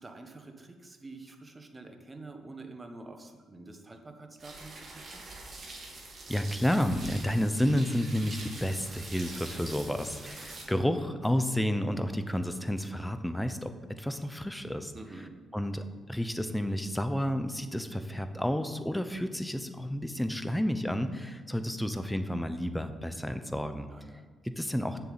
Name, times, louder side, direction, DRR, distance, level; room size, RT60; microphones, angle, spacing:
voice 1, 0.0-5.2 14.9-15.4 23.9-24.3, right 2 dB, 20° right, 4 dB, 1.4 m, -47 dB
sound 1, 4.4-10.6, right 2 dB, 45° right, 2.8 m, -44 dB
voice 2, 6.3-13.7 14.0-14.9 15.5-23.9 24.4-25.0, equal, 5° left, 9 dB, 0.8 m, -31 dB
7.2 x 7.1 x 8.1 m, 1.4 s
cardioid pair, 90°, 0 cm